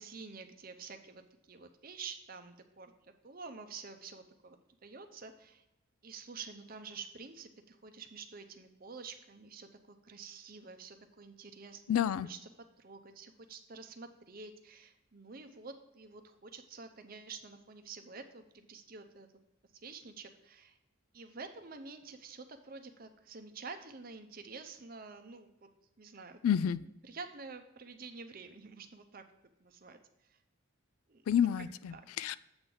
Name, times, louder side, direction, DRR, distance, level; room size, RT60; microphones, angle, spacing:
voice 1, 0.0-5.6 6.0-12.0 12.2-12.4 12.8-19.3 19.7-20.8 21.1-25.7 26.0-26.4 27.0-29.2 29.6-30.4 31.1-31.2 31.9-32.0, right 4 dB, 40° right, 7 dB, 0.7 m, -49 dB
voice 2, 11.9-12.3 26.4-26.8 31.3-32.4, left 9 dB, 85° left, 17 dB, 0.3 m, -29 dB
7.8 x 3.9 x 6.1 m, 0.88 s
head